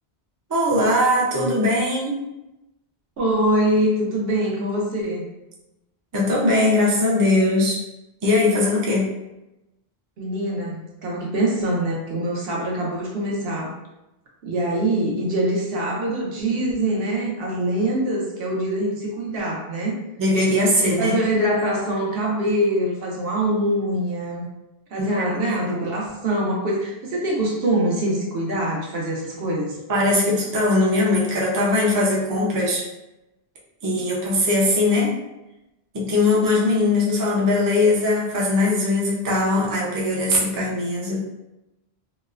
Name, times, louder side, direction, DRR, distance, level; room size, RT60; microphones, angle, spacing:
voice 1, 0.5-2.2 6.1-7.8 8.2-9.1 20.2-21.2 25.0-25.9 29.9-32.8 33.8-35.1 35.9-41.2, left 2 dB, 30° right, -4 dB, 0.4 m, -20 dB
voice 2, 3.2-5.2 10.2-13.7 14.4-20.0 21.0-24.5 24.9-29.8, right 1 dB, 70° right, -2 dB, 0.9 m, -24 dB
3.0 x 2.0 x 2.3 m, 0.95 s
omnidirectional pair, 1.1 m